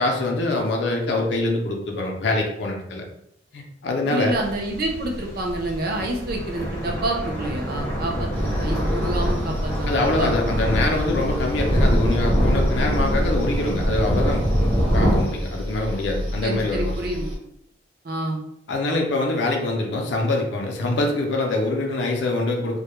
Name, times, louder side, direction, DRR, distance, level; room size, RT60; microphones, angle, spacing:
voice 1, 0.0-3.0 3.5-4.3 9.9-17.0 18.7-22.8, left 2 dB, 60° left, 1 dB, 0.4 m, -24 dB
voice 2, 4.1-9.9 10.2-10.5 16.4-17.3 18.0-18.4, right 1 dB, 50° right, 1 dB, 0.5 m, -28 dB
sound 1, 4.3-15.2, equal, 10° left, 0.6 m, -24 dB
sound 2, 8.3-17.4, equal, 25° right, 0.8 m, -31 dB
2.2 x 2.1 x 2.9 m, 0.75 s
head